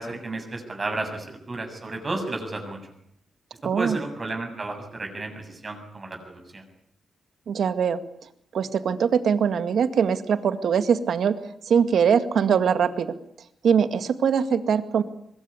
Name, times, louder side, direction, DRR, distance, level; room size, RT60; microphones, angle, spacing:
voice 1, 0.0-2.8 3.7-6.6, right 2 dB, 30° right, 4 dB, 7.3 m, -32 dB
voice 2, 3.6-4.0 7.5-8.0 8.5-11.4 11.7-13.1 13.6-15.0, right 7 dB, 70° right, 10 dB, 2.0 m, -22 dB
23.5 x 21.5 x 9.8 m, 0.73 s
cardioid pair, 115°, 0 cm